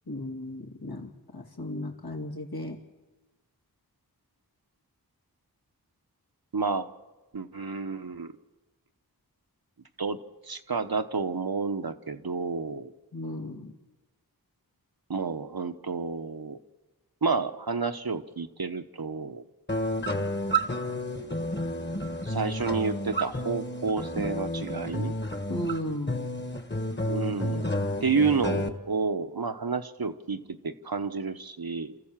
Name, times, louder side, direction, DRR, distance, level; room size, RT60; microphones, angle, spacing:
voice 1, 0.1-2.8 13.1-13.7 25.5-26.3, left 1 dB, 75° left, 1 dB, 2.6 m, -35 dB
voice 2, 6.5-6.9 7.3-8.3 10.0-10.2 10.4-12.9 15.1-16.6 17.2-19.4 22.2-25.1 27.0-27.7 28.0-32.0, right 4 dB, 75° right, 8 dB, 1.1 m, -30 dB
sound 1, 19.7-28.7, equal, 30° left, 1.6 m, -31 dB
27.5 x 14.5 x 7.4 m, 1.2 s
wide cardioid pair, 50°, 37 cm